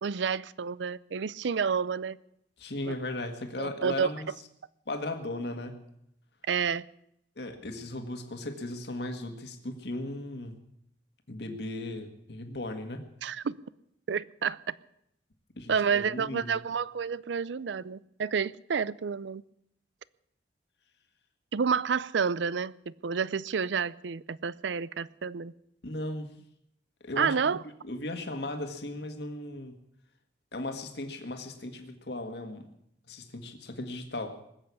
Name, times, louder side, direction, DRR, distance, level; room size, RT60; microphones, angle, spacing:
voice 1, 0.0-2.2 2.8-2.9 3.6-4.1 6.5-6.9 13.2-13.6 14.1-14.7 15.7-19.4 21.5-25.5 27.2-27.6, right 6 dB, 85° right, 20 dB, 0.5 m, -29 dB
voice 2, 2.6-4.3 4.9-5.8 7.4-10.6 11.3-13.1 15.6-16.6 25.8-26.3 27.0-27.3 27.8-29.8 30.5-32.7 33.1-34.4, left 1 dB, 65° left, 5 dB, 1.8 m, -37 dB
20.0 x 7.9 x 8.3 m, 0.75 s
head